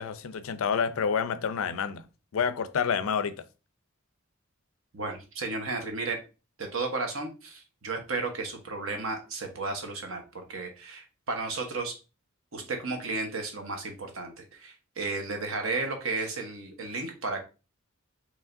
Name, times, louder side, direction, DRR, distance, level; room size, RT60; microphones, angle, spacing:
voice 1, 0.0-2.1 2.3-3.4, left 6 dB, 85° left, 0.4 m, -28 dB
voice 2, 4.9-6.2 6.6-11.9 12.5-17.4, right 3 dB, 75° right, 1.1 m, -33 dB
4.8 x 3.2 x 2.6 m
head